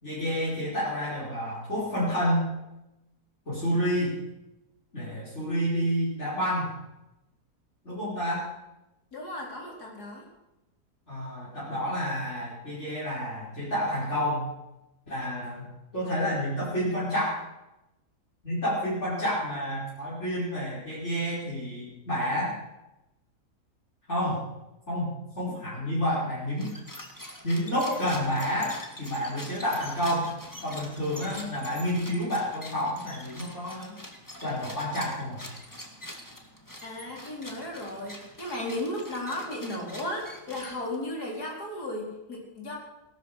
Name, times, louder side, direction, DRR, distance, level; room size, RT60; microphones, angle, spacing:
voice 1, 0.0-2.6 3.5-4.1 4.9-6.7 7.8-8.5 11.1-14.5 15.1-15.7 15.9-17.4 18.4-22.5 24.1-24.4 24.9-26.7 27.4-30.4 30.6-34.0 34.4-35.4, equal, 45° left, -9 dB, 5.7 m, -29 dB
voice 2, 9.1-10.2 36.8-42.8, left 1 dB, 70° left, -1 dB, 4.7 m, -35 dB
sound 1, 26.5-41.1, left 1 dB, 10° left, 2.0 m, -45 dB
18.0 x 12.0 x 6.6 m, 0.94 s
omnidirectional pair, 1.7 m